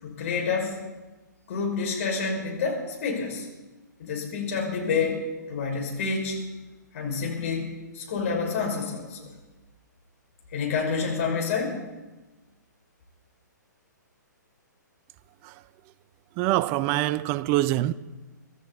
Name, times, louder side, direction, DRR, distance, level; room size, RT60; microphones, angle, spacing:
voice 1, 0.0-0.8 1.5-3.5 4.0-5.2 5.5-6.4 6.9-9.3 10.5-11.8, left 5 dB, 45° left, 5.8 m, -28 dB
voice 2, 16.4-17.9, right 16 dB, 25° right, 0.5 m, -25 dB
24.0 x 14.0 x 4.2 m
figure-of-eight pair, 125°, 10 cm